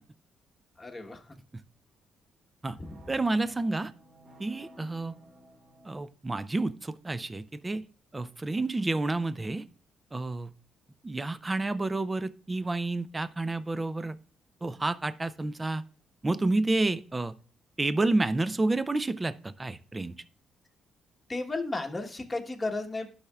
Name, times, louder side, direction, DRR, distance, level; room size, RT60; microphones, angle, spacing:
voice 1, 0.8-1.2 2.8-3.1 21.3-23.1, left 2 dB, 20° left, 2 dB, 1.2 m, -34 dB
sound 1, 2.8-6.0, right 1 dB, 65° right, 1.7 m, -54 dB
voice 2, 3.1-3.9 4.4-5.2 5.8-7.8 8.1-9.6 10.1-10.5 11.0-14.2 14.6-15.8 16.2-17.4 17.8-20.1, right 2 dB, 20° right, 15 dB, 0.5 m, -29 dB
12.0 x 5.7 x 2.4 m, 0.40 s
cardioid pair, 90°, 0 cm